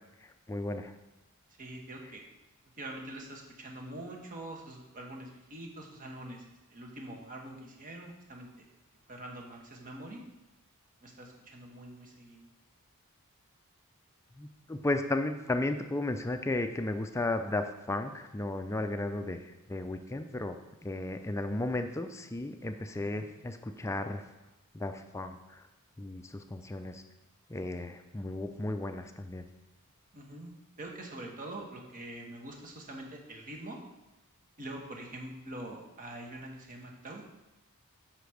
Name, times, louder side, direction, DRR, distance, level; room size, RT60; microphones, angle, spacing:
voice 1, 0.5-0.9 14.4-19.4 19.7-24.2 24.7-25.6 26.0-27.0 27.5-29.5, left 2 dB, 15° left, 7 dB, 0.4 m, -34 dB
voice 2, 1.6-2.2 2.8-6.4 6.7-8.6 9.1-10.2 11.0-12.5 23.0-23.3 30.1-33.8 34.6-37.2, right 1 dB, 40° right, 1 dB, 1.2 m, -44 dB
5.8 x 5.1 x 6.3 m, 0.98 s
head